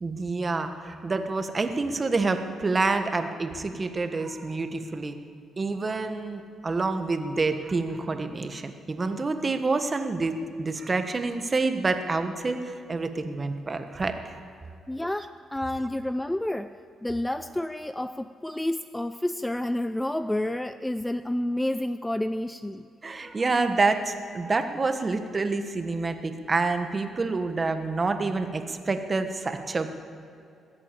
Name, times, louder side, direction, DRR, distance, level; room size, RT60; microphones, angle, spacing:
voice 1, 0.0-5.1 5.6-14.4 23.0-29.9, right 3 dB, 30° right, 7 dB, 1.3 m, -28 dB
voice 2, 14.9-22.9, left 1 dB, 10° left, 12 dB, 0.4 m, -30 dB
21.0 x 8.4 x 7.5 m, 2.5 s
cardioid pair, 90°, 0 cm